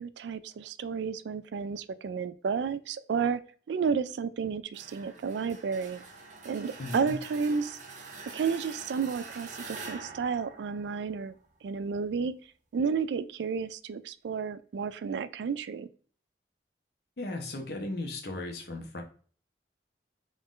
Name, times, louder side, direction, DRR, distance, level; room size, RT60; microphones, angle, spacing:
voice 1, 0.0-3.4 3.7-6.0 6.4-7.8 8.3-11.3 11.6-12.3 12.7-15.9, right 6 dB, 75° right, 14 dB, 0.3 m, -31 dB
sound 1, 4.7-11.5, right 4 dB, 40° right, 0.6 m, -45 dB
voice 2, 6.8-7.2 17.2-19.0, left 2 dB, 60° left, 3 dB, 0.9 m, -36 dB
3.8 x 2.5 x 3.6 m, 0.43 s
head